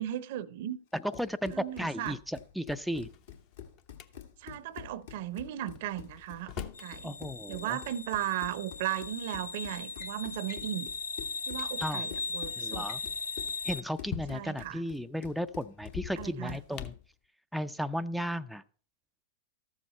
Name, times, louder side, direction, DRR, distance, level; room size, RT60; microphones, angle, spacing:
voice 1, 0.0-0.8 1.5-2.2 4.4-7.1 7.5-10.9 11.5-12.9 14.3-14.8 16.2-16.6, right 12 dB, 55° right, 0.6 m, -36 dB
Run, 0.9-16.8, left 9 dB, 65° left, 1.5 m, -48 dB
voice 2, 0.9-3.1 7.0-7.8 11.8-12.1 12.6-13.0 13.6-16.9 17.5-18.6, equal, ahead, 0.4 m, -34 dB
Drawer open or close, 2.7-4.1 5.7-6.9 8.2-8.3 9.1-9.4 9.7-10.1 10.5-10.7 11.2-11.3 11.5-11.7 12.7-14.7 15.8-17.1, left 10 dB, 40° left, 0.8 m, -44 dB
sound 1, 6.7-13.8, left 4 dB, 80° left, 0.7 m, -38 dB
13.0 x 7.3 x 4.2 m
hypercardioid pair, 105°, 0 cm